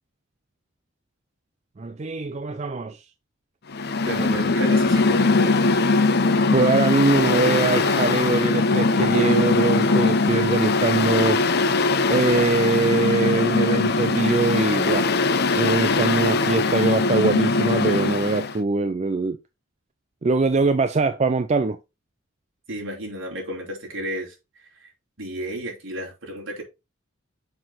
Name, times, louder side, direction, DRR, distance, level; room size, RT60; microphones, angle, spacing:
voice 1, 1.8-3.0 6.5-11.4 12.1-15.1 15.5-19.4 20.2-21.8, right 3 dB, 30° right, 0.4 m, -22 dB
Mechanical fan, 3.7-18.5, left 3 dB, 50° left, 0.7 m, -21 dB
voice 2, 4.1-5.6 22.7-24.4 24.7-24.9 25.2-26.6, right 1 dB, 70° right, 3.8 m, -32 dB
6.8 x 6.0 x 4.0 m
head